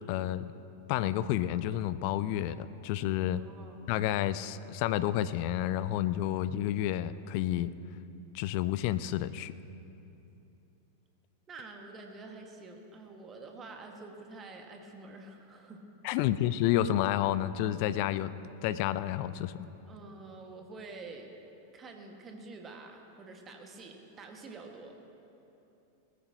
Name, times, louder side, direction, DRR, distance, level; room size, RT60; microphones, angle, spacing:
voice 1, 0.1-0.5 0.9-3.4 3.9-7.7 8.3-9.5 16.0-18.3 18.6-19.7, left 12 dB, 45° left, 15 dB, 0.5 m, -30 dB
voice 2, 3.3-3.7 11.5-15.8 16.2-16.3 19.9-21.3 21.7-24.9, right 3 dB, 25° right, 3 dB, 1.7 m, -47 dB
20.0 x 14.5 x 2.9 m, 2.9 s
figure-of-eight pair, 90°, 0 cm